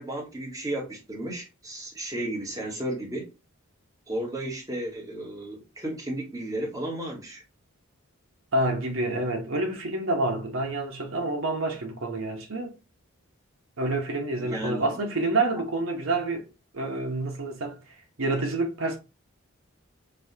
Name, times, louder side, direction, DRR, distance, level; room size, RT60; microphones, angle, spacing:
voice 1, 0.0-3.3 4.1-7.4 14.4-15.0, right 1 dB, 15° right, 1.2 m, -33 dB
voice 2, 8.5-12.8 13.8-16.4 16.7-17.8 18.2-19.0, right 2 dB, 70° right, 1.0 m, -28 dB
5.5 x 2.3 x 2.7 m
head